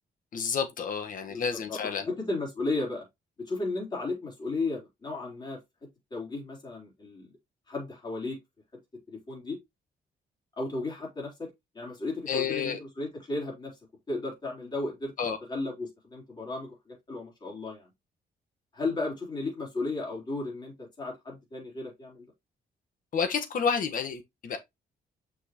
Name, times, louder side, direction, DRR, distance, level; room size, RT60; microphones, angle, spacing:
voice 1, 0.3-2.1 12.3-12.8 15.2-15.4 23.1-24.6, left 6 dB, 55° left, 1.4 m, -30 dB
voice 2, 1.3-1.8 2.1-3.0 3.4-5.6 6.1-7.3 7.7-8.4 9.1-9.6 10.6-13.8 14.1-15.1 15.5-17.9 18.7-22.3, left 2 dB, 25° left, 3.9 m, -34 dB
6.2 x 5.5 x 3.0 m
wide cardioid pair, 175°, 17 cm